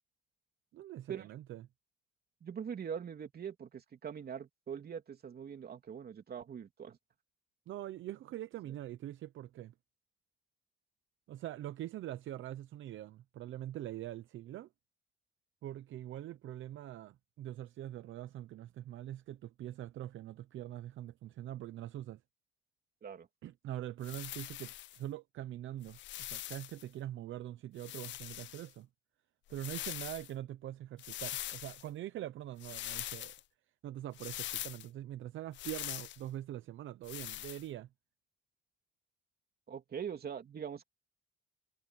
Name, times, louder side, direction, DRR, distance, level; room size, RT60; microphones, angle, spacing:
voice 1, 0.7-1.6 7.7-9.7 11.3-14.7 15.6-22.2 23.4-28.9 29.5-33.3 33.8-37.9, right 13 dB, 75° right, 0.8 m, -43 dB
voice 2, 2.4-7.0 23.0-23.3 39.7-40.8, right 7 dB, 50° right, 3.2 m, -42 dB
sound 1, 24.0-25.0 25.8-26.8 27.8-28.7 29.5-30.3 31.0-31.9 32.6-33.4 34.1-34.9 35.5-36.2 37.0-37.6, left 15 dB, 70° left, 0.4 m, -43 dB
cardioid pair, 90°, 20 cm